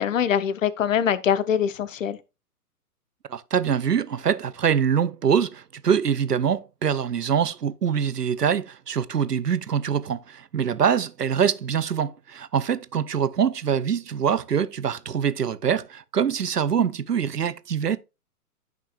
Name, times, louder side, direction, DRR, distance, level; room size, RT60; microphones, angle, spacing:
voice 1, 0.0-2.2, left 8 dB, 55° left, 0.8 m, -23 dB
voice 2, 3.3-18.0, right 7 dB, 85° right, 0.7 m, -24 dB
10.5 x 6.0 x 2.3 m
figure-of-eight pair, 120°, 46 cm